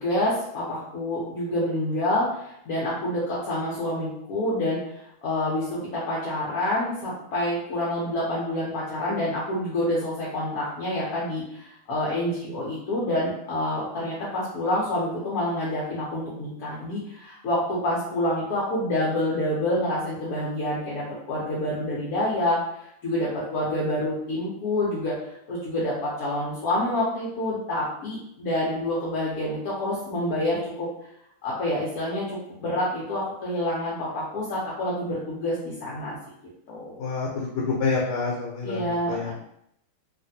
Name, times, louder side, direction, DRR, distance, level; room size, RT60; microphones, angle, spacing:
voice 1, 0.0-22.6 23.0-25.2 25.5-30.9 31.4-36.2 36.7-37.0 38.6-39.3, left 1 dB, 65° left, -7 dB, 0.9 m, -27 dB
voice 2, 37.0-39.3, left 4 dB, 80° left, -2 dB, 1.5 m, -27 dB
3.2 x 2.5 x 2.6 m, 0.75 s
omnidirectional pair, 2.3 m